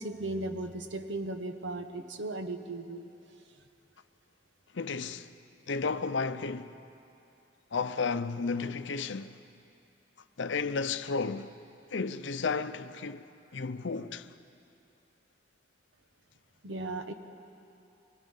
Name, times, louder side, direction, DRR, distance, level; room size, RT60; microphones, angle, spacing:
voice 1, 0.0-3.1 16.6-17.1, right 2 dB, 80° right, 1.1 m, -36 dB
voice 2, 4.7-5.3 5.7-6.8 7.7-9.4 10.4-11.5 11.9-13.2 13.5-14.3, left 4 dB, 75° left, 0.6 m, -33 dB
24.5 x 19.5 x 5.7 m
head